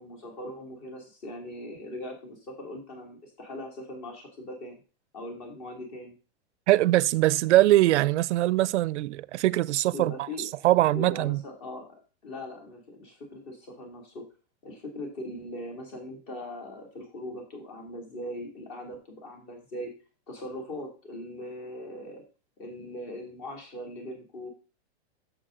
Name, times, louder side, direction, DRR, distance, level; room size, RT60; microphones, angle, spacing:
voice 1, 0.0-4.8 5.1-6.1 9.9-10.5 10.9-14.2 14.6-19.9 20.3-22.2 22.6-24.5, left 1 dB, 35° left, 2.7 m, -40 dB
voice 2, 6.7-10.1 10.6-11.4, right 16 dB, 80° right, 0.5 m, -22 dB
8.7 x 7.0 x 3.8 m
supercardioid pair, 175°, 34 cm